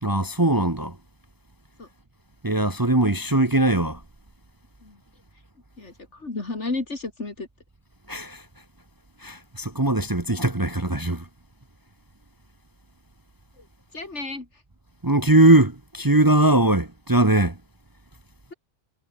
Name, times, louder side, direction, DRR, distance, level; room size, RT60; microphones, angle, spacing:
voice 1, 0.0-1.0 2.4-4.0 8.1-8.4 9.2-11.3 15.0-17.6, right 2 dB, 20° right, 1.2 m, -20 dB
voice 2, 5.8-7.5 13.6-13.7 13.9-14.5, left 3 dB, 75° left, 3.6 m, -32 dB
omnidirectional pair, 1.2 m